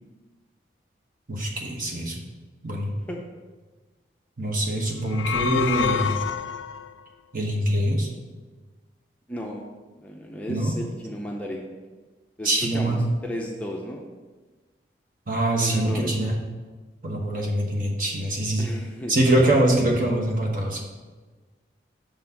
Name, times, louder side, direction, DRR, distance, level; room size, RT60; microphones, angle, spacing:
voice 1, 1.3-2.2 2.6-3.0 4.4-6.2 7.3-8.1 10.5-10.7 12.4-13.0 15.3-16.4 17.0-18.7 19.1-20.8, right 1 dB, 45° right, 0 dB, 1.1 m, -24 dB
sound 1, 5.0-6.9, left 7 dB, 85° left, 0.3 m, -27 dB
voice 2, 9.3-9.6 10.0-11.6 12.4-14.1 15.6-16.1 18.6-19.2, equal, 10° left, -1 dB, 0.5 m, -34 dB
6.8 x 3.9 x 5.8 m, 1.3 s
head